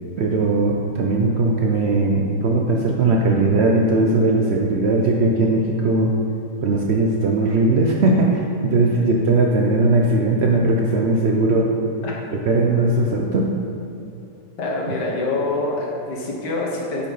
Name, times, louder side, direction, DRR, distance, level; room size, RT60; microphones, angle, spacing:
voice 1, 0.2-6.1 6.6-11.7 12.3-13.5, right 2 dB, 90° right, -1 dB, 0.5 m, -19 dB
voice 2, 14.6-17.1, left 2 dB, 75° left, -2 dB, 1.8 m, -25 dB
8.2 x 5.6 x 4.0 m, 2.8 s
omnidirectional pair, 1.9 m